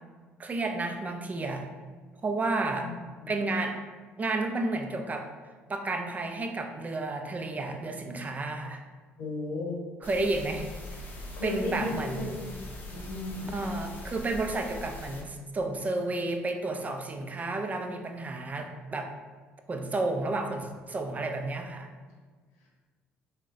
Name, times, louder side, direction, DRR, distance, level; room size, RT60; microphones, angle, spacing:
voice 1, 0.4-1.6 2.2-2.9 3.3-3.8 4.2-5.3 5.7-8.8 10.0-10.7 11.4-12.2 13.5-19.1 19.7-21.9, right 2 dB, 30° right, 4 dB, 0.4 m, -31 dB
voice 2, 2.7-3.3 9.2-9.8 11.3-12.4 12.9-13.5, left 2 dB, 75° left, -2 dB, 0.7 m, -35 dB
sound 1, 10.0-15.2, left 1 dB, 35° left, 0.6 m, -42 dB
3.7 x 2.1 x 2.5 m, 1.5 s
hypercardioid pair, 60°, 5 cm